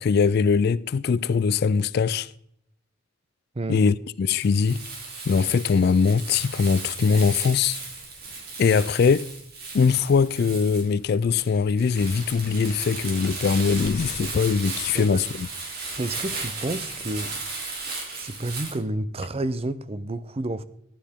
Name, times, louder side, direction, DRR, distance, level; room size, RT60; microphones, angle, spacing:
voice 1, 0.0-2.3 3.7-4.8 5.3-7.8 8.6-9.3 9.7-15.5, left 5 dB, 50° left, 0.3 m, -21 dB
Crumpling crinkling, 4.4-18.7, right 3 dB, 50° right, 3.0 m, -35 dB
voice 2, 16.0-17.3 18.2-20.6, right 2 dB, 30° right, 0.5 m, -30 dB
14.5 x 10.0 x 3.6 m
head